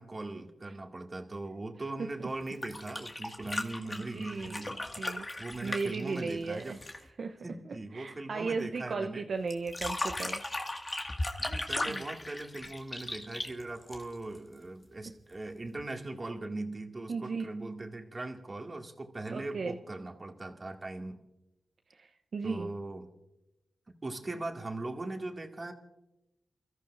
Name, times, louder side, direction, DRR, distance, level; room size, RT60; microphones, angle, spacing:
voice 1, 0.0-6.8 7.4-9.3 11.4-21.2 22.4-23.1 24.0-25.7, right 2 dB, 35° right, 2 dB, 2.1 m, -40 dB
sound 1, 2.4-7.1 9.5-14.4 15.8-15.9, left 2 dB, 30° left, 1.9 m, -37 dB
voice 2, 3.8-4.7 5.0-5.3 5.6-6.8 7.2-7.4 7.9-10.4 11.9-12.0 17.1-17.4 19.3-19.8 21.9-22.7, right 4 dB, 70° right, 5 dB, 0.7 m, -36 dB
29.0 x 14.0 x 2.6 m, 0.94 s
cardioid pair, 50°, 0 cm